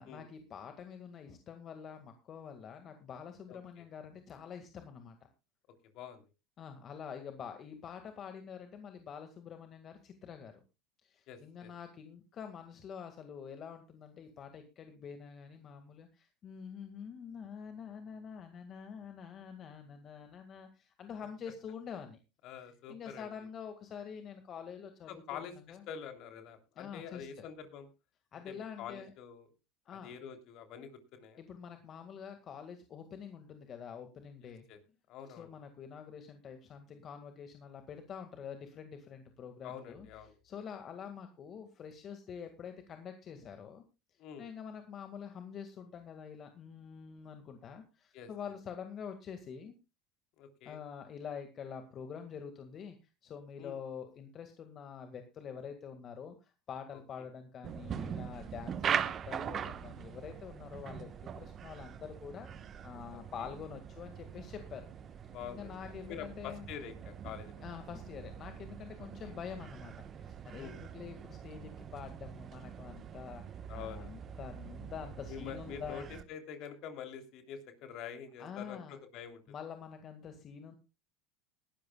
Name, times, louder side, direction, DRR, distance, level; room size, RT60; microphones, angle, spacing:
voice 1, 0.0-5.2 6.6-10.6 11.0-22.2 22.9-25.4 25.7-25.8 26.8-27.5 28.3-29.1 29.9-30.1 31.4-34.7 35.4-40.1 40.4-43.8 44.1-49.7 50.7-53.0 53.2-64.9 65.5-66.7 67.6-76.1 78.4-79.0 79.5-80.7, left 7 dB, 40° left, 7 dB, 1.9 m, -46 dB
voice 2, 11.3-11.7 22.4-23.3 25.1-27.9 28.4-29.5 29.9-31.4 34.4-34.8 35.1-35.5 39.6-40.3 44.2-44.5 48.1-48.3 50.4-50.8 53.6-53.8 63.1-63.5 65.3-65.8 66.0-67.6 69.3-69.4 70.5-70.8 73.7-74.1 75.3-79.4, left 8 dB, 55° left, 6 dB, 3.3 m, -46 dB
sound 1, 57.6-76.2, right 8 dB, 35° right, 1.2 m, -42 dB
20.0 x 12.5 x 2.3 m, 0.29 s
supercardioid pair, 100°, 0 cm